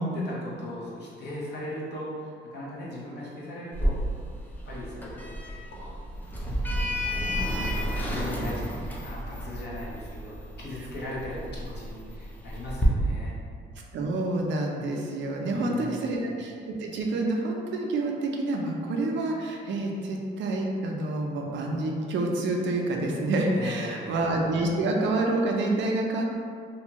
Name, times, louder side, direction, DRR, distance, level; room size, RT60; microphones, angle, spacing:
voice 1, 0.0-4.0 4.7-6.0 6.6-8.6 9.0-13.4 15.4-16.1 23.5-24.2, left 1 dB, 60° left, -5 dB, 0.8 m, -38 dB
Sliding door, 3.7-12.9, equal, 10° left, 0.4 m, -32 dB
voice 2, 13.9-26.2, right 2 dB, 70° right, 0 dB, 0.5 m, -28 dB
2.6 x 2.3 x 2.9 m, 2.2 s
cardioid pair, 90°, 20 cm